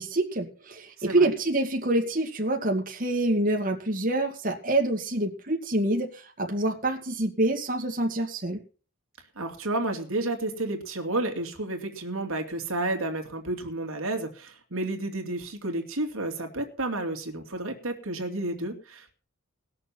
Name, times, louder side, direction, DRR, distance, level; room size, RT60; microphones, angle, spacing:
voice 1, 0.0-8.6, right 2 dB, 40° right, 1 dB, 2.2 m, -26 dB
voice 2, 1.0-1.3 9.4-19.1, right 2 dB, 80° right, 4 dB, 2.7 m, -31 dB
19.5 x 6.9 x 5.9 m, 0.38 s
head